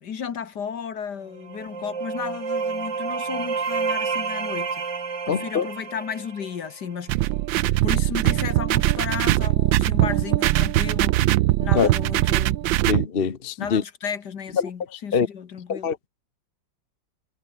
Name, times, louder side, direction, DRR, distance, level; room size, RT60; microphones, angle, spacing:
voice 1, 0.0-4.8 5.3-11.2 11.6-12.8 13.6-15.9, left 7 dB, 60° left, 2.0 m, -34 dB
sound 1, 1.3-7.0, right 5 dB, 60° right, 3.2 m, -29 dB
voice 2, 5.3-5.7 11.7-11.9 12.9-13.8 14.6-14.7 15.1-15.3 15.7-16.1, left 6 dB, 35° left, 1.2 m, -23 dB
sound 2, 7.1-13.1, right 16 dB, 80° right, 1.4 m, -21 dB
omnidirectional pair, 2.1 m